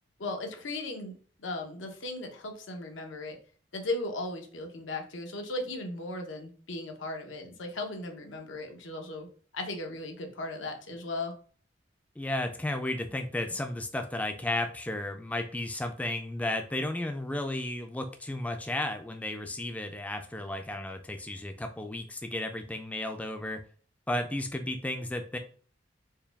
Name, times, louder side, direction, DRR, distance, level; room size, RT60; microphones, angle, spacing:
voice 1, 0.2-1.1 1.4-3.4 3.7-9.3 9.5-11.3, left 2 dB, 85° left, 3 dB, 0.8 m, -37 dB
voice 2, 12.2-23.6 24.1-25.4, left 1 dB, 10° left, 6 dB, 0.3 m, -33 dB
4.6 x 2.3 x 3.4 m, 0.43 s
head